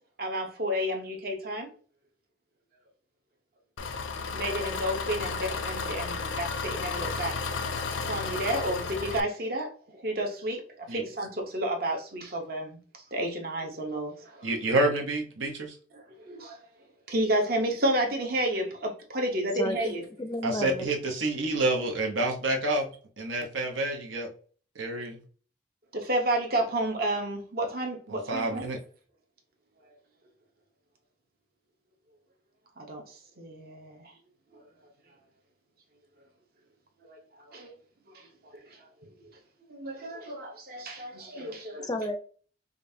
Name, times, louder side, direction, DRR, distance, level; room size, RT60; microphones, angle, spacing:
voice 1, 0.2-1.7 4.3-7.4 8.1-12.8 13.1-14.5 15.9-16.6 17.1-20.0 25.9-28.7 32.8-34.1 34.5-34.6 37.0-37.7 38.1-38.8 39.7-41.9, right 1 dB, 50° right, 0.9 m, -31 dB
Engine, 3.8-9.2, left 4 dB, 85° left, 0.4 m, -33 dB
voice 2, 14.4-15.7 20.4-22.9 23.2-24.3 24.8-25.2 28.1-28.8, right 2 dB, 90° right, 1.0 m, -28 dB
voice 3, 19.5-20.9 41.8-42.2, left 1 dB, 20° left, 0.4 m, -32 dB
5.2 x 2.4 x 2.7 m
head